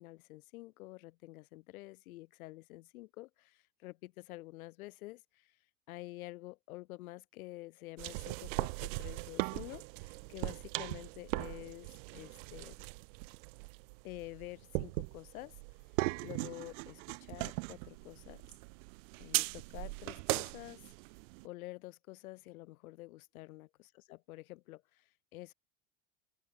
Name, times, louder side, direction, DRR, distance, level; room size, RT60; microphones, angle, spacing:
voice 1, 0.0-5.6 5.9-12.8 14.0-15.6 16.2-18.4 19.2-20.9 21.4-25.5, left 19 dB, 85° left, 5.0 m, -49 dB
sound 1, 8.0-21.5, right 28 dB, 60° right, 0.7 m, -39 dB
open air
supercardioid pair, 165°, 42 cm